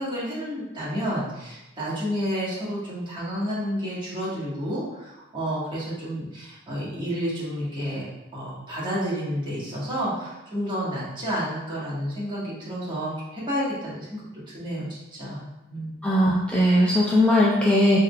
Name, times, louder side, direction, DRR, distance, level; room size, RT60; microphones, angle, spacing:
voice 1, 0.0-8.1 8.3-14.2 14.5-16.0, equal, 25° right, -8 dB, 1.4 m, -30 dB
voice 2, 16.0-18.0, left 1 dB, 5° left, -6 dB, 0.4 m, -19 dB
4.2 x 3.6 x 2.3 m, 0.98 s
head